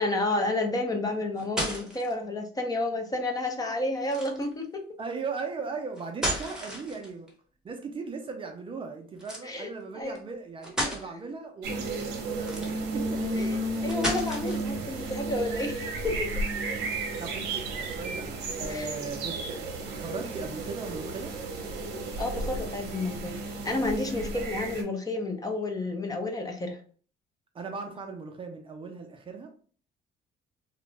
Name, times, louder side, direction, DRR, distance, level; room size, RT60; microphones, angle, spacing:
voice 1, 0.0-4.8 9.4-9.7 9.9-10.2 10.8-10.9 13.4-13.6 13.8-16.3 18.7-18.9 22.2-26.8, left 2 dB, 20° left, 3 dB, 0.5 m, -30 dB
sound 1, 1.1-2.1 4.0-4.5 6.0-7.3 9.2-9.5 10.2-10.3 10.6-11.0 12.4-13.0 13.9-14.7, right 1 dB, 5° right, 0.9 m, -33 dB
voice 2, 5.0-7.3 7.6-11.9 12.2-13.7 17.2-21.4 24.3-24.5 27.5-29.5, right 4 dB, 30° right, 4 dB, 0.5 m, -38 dB
sound 2, 11.6-24.8, right 2 dB, 90° right, 0.6 m, -33 dB
2.4 x 2.1 x 3.0 m, 0.43 s
cardioid pair, 110°, 17 cm